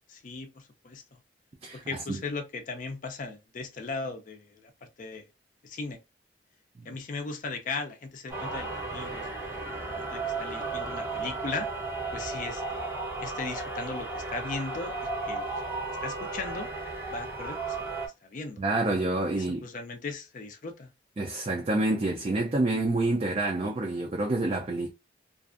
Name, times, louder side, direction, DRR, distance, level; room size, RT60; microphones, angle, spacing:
voice 1, 0.1-1.0 1.9-4.7 5.0-5.2 5.6-6.0 6.9-9.3 9.9-11.7 12.1-12.8 13.2-14.9 15.3-15.5 16.0-16.7 17.1-17.8 18.2-18.6 19.3-20.9, left 3 dB, 45° left, 0.4 m, -37 dB
voice 2, 1.6-2.2 6.8-7.0 18.6-19.6 21.2-24.9, right 2 dB, 30° right, 0.4 m, -28 dB
sound 1, 8.3-18.1, right 3 dB, 10° right, 0.7 m, -34 dB
2.5 x 2.3 x 2.4 m
head